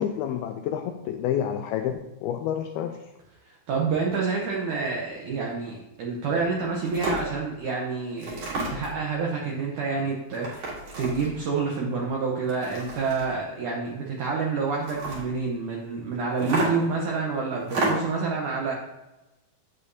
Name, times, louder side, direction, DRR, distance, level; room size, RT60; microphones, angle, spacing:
voice 1, 0.0-3.0, left 9 dB, 85° left, 5 dB, 2.2 m, -29 dB
voice 2, 3.4-18.7, right 4 dB, 80° right, -2 dB, 1.8 m, -28 dB
sound 1, 6.4-6.5 6.9-7.3 8.2-9.0 10.3-11.4 12.4-13.4 14.7-15.3 16.4-17.0 17.6-18.2, right 2 dB, 55° right, 3.4 m, -30 dB
8.4 x 8.2 x 2.7 m, 0.99 s
omnidirectional pair, 4.8 m